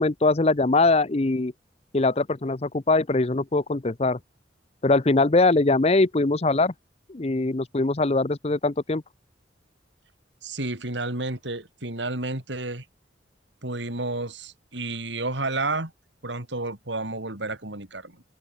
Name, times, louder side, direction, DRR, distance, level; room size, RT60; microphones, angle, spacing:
voice 1, 0.0-1.5 1.9-4.2 4.8-6.7 7.1-9.0, left 3 dB, 35° left, 0.7 m, -22 dB
voice 2, 10.4-12.8 13.6-15.9 16.2-18.2, right 2 dB, 75° right, 4.1 m, -31 dB
head